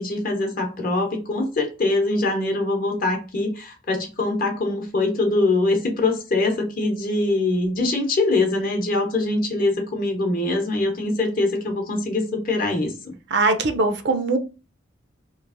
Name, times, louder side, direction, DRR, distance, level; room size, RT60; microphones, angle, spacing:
voice 1, 0.0-13.1, left 2 dB, 50° left, 0.8 m, -23 dB
voice 2, 13.3-14.4, right 3 dB, 60° right, 0.5 m, -21 dB
3.1 x 2.4 x 2.4 m
head